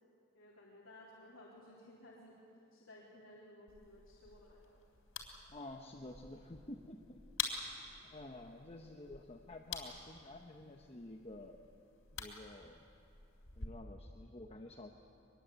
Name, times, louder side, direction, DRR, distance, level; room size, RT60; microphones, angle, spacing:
voice 1, 0.3-2.3 2.7-4.8 7.6-8.2, left 1 dB, 70° left, -6 dB, 3.6 m, -58 dB
sound 1, 3.7-13.7, left 6 dB, 85° left, 3.6 m, -48 dB
voice 2, 5.5-7.2 8.0-11.6 12.1-12.8 13.6-14.9, left 2 dB, 30° left, 2 dB, 1.0 m, -50 dB
23.5 x 21.5 x 8.2 m, 2.7 s
head